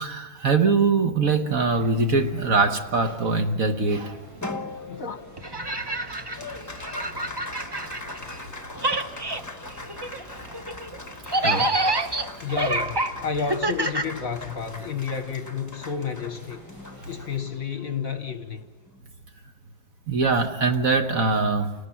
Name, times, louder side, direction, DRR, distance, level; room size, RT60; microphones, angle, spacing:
voice 1, 0.0-4.2 11.4-11.7 20.1-21.7, right 4 dB, 50° right, 1.5 m, -22 dB
sound 1, 1.7-17.4, equal, 75° right, 6.0 m, -48 dB
Applause, 4.4-19.1, left 2 dB, 10° left, 1.0 m, -41 dB
voice 2, 4.9-5.2 12.4-16.6 17.1-18.6, left 6 dB, 50° left, 1.3 m, -31 dB
sound 2, 5.4-8.5 8.7-14.7, right 1 dB, 35° right, 0.4 m, -28 dB
29.5 x 19.0 x 5.8 m
omnidirectional pair, 2.1 m